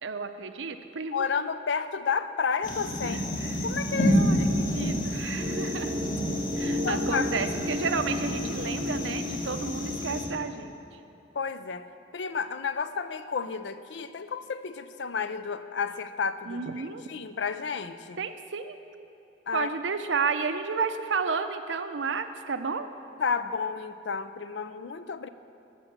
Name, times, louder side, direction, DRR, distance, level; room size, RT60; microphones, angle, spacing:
voice 1, 0.0-1.5 3.0-3.7 4.1-6.0 6.5-10.7 16.5-17.0 18.2-18.8 19.5-22.9, right 5 dB, 85° right, 9 dB, 0.7 m, -32 dB
voice 2, 1.1-3.2 3.6-4.5 6.6-7.3 11.3-11.9 12.1-18.2 19.5-19.7 23.2-25.3, left 5 dB, 70° left, 12 dB, 0.5 m, -31 dB
sound 1, 2.6-10.3, equal, 50° left, 1.5 m, -29 dB
sound 2, 5.1-10.5, left 1 dB, 20° right, 0.7 m, -34 dB
13.0 x 6.4 x 7.4 m, 3.0 s
head